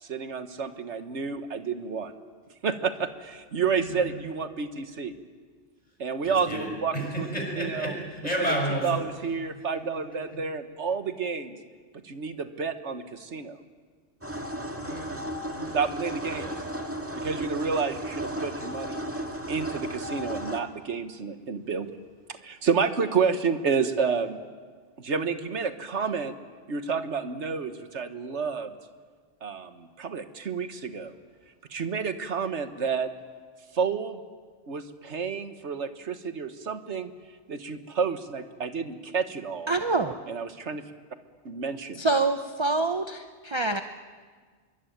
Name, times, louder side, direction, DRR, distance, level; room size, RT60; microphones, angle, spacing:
voice 1, 0.0-2.1 2.6-5.2 6.0-7.3 7.6-7.9 8.8-11.6 12.0-13.6 15.7-16.4 17.1-19.0 19.5-21.9 22.3-24.4 25.0-26.3 26.7-28.7 29.4-31.1 31.7-33.1 33.7-34.2 34.7-37.1 37.5-39.7 40.3-40.8 41.4-42.1, right 5 dB, 85° right, 9 dB, 1.6 m, -30 dB
voice 2, 3.8-4.2 6.2-9.0 9.7-10.4 14.8-15.1 15.5-15.8 16.3-16.6, equal, 35° left, 0 dB, 6.5 m, -32 dB
sound 1, 14.2-20.6, equal, 10° right, 2.0 m, -34 dB
voice 3, 39.7-40.1 42.0-43.8, right 3 dB, 25° right, 7 dB, 0.9 m, -26 dB
24.5 x 23.0 x 9.3 m, 1.5 s
omnidirectional pair, 1.1 m